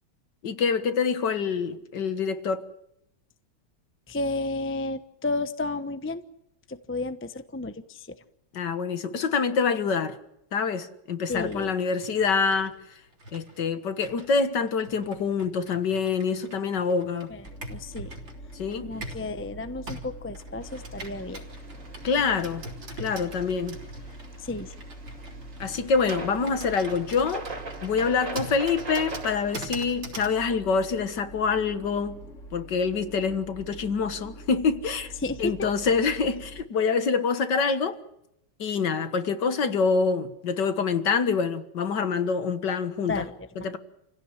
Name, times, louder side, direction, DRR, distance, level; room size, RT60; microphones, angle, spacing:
voice 1, 0.4-2.6 8.5-10.2 10.5-12.8 13.3-17.3 18.5-18.9 22.0-22.7 23.0-23.8 25.6-27.4 27.8-32.2 32.5-35.1 35.4-38.0 38.6-43.2 43.6-43.8, left 5 dB, 55° left, 2.0 m, -26 dB
voice 2, 4.1-6.2 6.7-8.2 11.3-11.7 17.3-18.1 18.8-21.4 24.4-24.7 35.2-35.5 43.1-43.8, left 2 dB, 15° left, 0.5 m, -32 dB
Computer keyboard, 11.4-19.3 19.9-30.4, right 2 dB, 60° right, 4.4 m, -43 dB
sound 1, 17.4-36.6, right 1 dB, 35° left, 3.9 m, -45 dB
sound 2, 20.6-29.6, right 2 dB, 40° right, 3.5 m, -42 dB
29.0 x 16.5 x 9.8 m
omnidirectional pair, 2.3 m